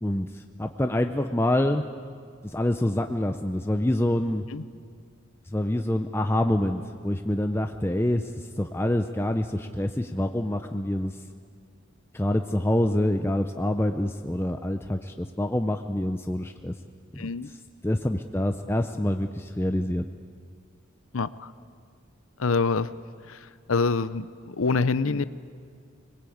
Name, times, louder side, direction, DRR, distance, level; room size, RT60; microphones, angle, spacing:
voice 1, 0.0-1.8 2.4-4.4 5.5-11.2 12.1-16.7 17.1-17.6 17.8-20.0, left 1 dB, 10° left, 6 dB, 0.6 m, -26 dB
voice 2, 17.2-17.5 21.1-21.5 22.4-22.9 23.3-23.4 23.7-25.2, left 4 dB, 80° left, 15 dB, 0.7 m, -25 dB
25.0 x 21.5 x 8.7 m, 2.1 s
head